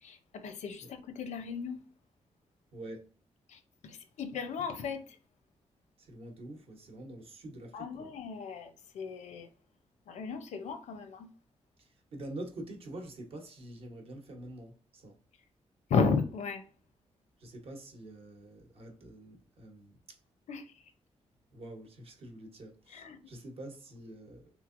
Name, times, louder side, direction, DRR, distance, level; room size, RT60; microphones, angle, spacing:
voice 1, 0.0-1.8 3.5-5.2 7.7-9.5 10.1-11.3 15.9-16.6 20.5-20.7 22.9-23.2, left 5 dB, 90° left, 0.6 m, -34 dB
voice 2, 2.7-3.1 6.0-8.1 11.8-15.2 17.4-20.0 21.5-24.5, right 1 dB, 55° right, 0.9 m, -46 dB
3.5 x 3.1 x 2.5 m
wide cardioid pair, 180°, 12 cm